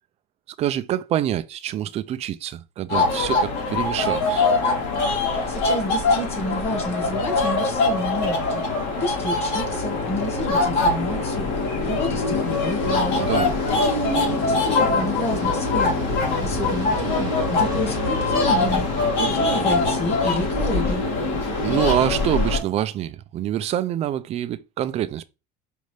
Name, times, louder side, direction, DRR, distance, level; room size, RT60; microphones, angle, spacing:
voice 1, 0.6-4.4 13.2-13.5 21.6-25.2, right 11 dB, 40° right, 0.4 m, -26 dB
sound 1, 2.9-22.6, left 3 dB, 70° left, 2.2 m, -23 dB
voice 2, 5.5-8.6 9.0-11.5 11.8-13.2 13.8-16.0 16.4-18.9 19.2-21.0, left 1 dB, 35° left, 1.6 m, -29 dB
Aircraft, 14.1-22.1, right 4 dB, 25° right, 0.8 m, -38 dB
5.3 x 2.5 x 3.2 m
cardioid pair, 140°, 17 cm